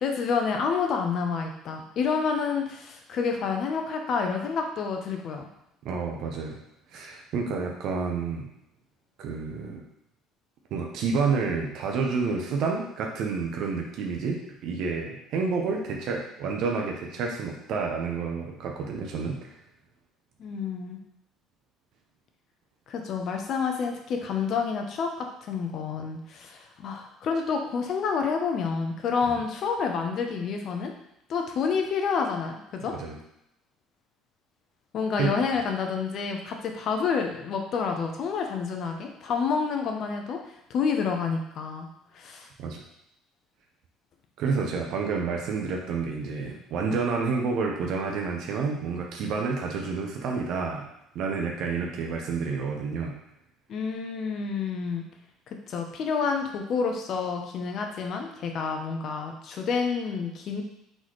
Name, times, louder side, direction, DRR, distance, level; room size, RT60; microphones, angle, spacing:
voice 1, 0.0-5.5 20.4-21.0 22.9-30.9 31.3-32.9 34.9-40.4 40.7-41.9 42.1-42.5 53.7-55.0 55.7-60.6, left 5 dB, 55° left, 3 dB, 0.8 m, -29 dB
voice 2, 5.8-6.6 6.9-8.5 9.2-9.8 10.7-19.5 29.3-29.4 32.9-33.2 35.2-35.3 42.6-42.8 44.4-50.9 51.1-53.2, right 4 dB, 65° right, 1 dB, 0.8 m, -29 dB
4.0 x 3.9 x 3.2 m, 0.80 s
supercardioid pair, 90°, 0 cm